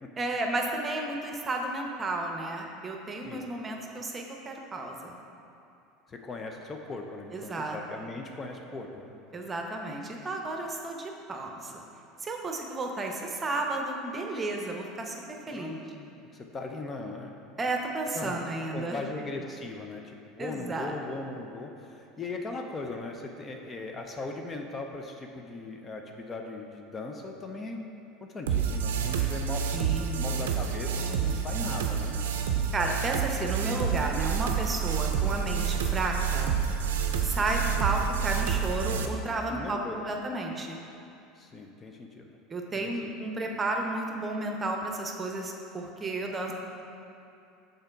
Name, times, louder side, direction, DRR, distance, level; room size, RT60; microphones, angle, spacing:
voice 1, 0.2-5.2 7.3-7.8 9.3-11.8 12.2-15.2 15.5-15.8 17.6-19.0 20.4-20.9 29.7-30.2 32.7-36.5 37.2-39.8 40.0-40.8 42.5-46.5, right 2 dB, 25° right, 2 dB, 0.8 m, -32 dB
voice 2, 6.1-9.2 15.5-17.3 18.1-18.4 18.7-27.8 28.2-29.8 30.1-32.2 37.4-37.5 39.5-40.1 41.4-42.4 42.8-43.1, left 3 dB, 30° left, 3 dB, 0.6 m, -39 dB
sound 1, 28.5-39.1, right 7 dB, 80° right, 0.5 m, -28 dB
6.6 x 3.9 x 4.6 m, 2.8 s
hypercardioid pair, 80°, 0 cm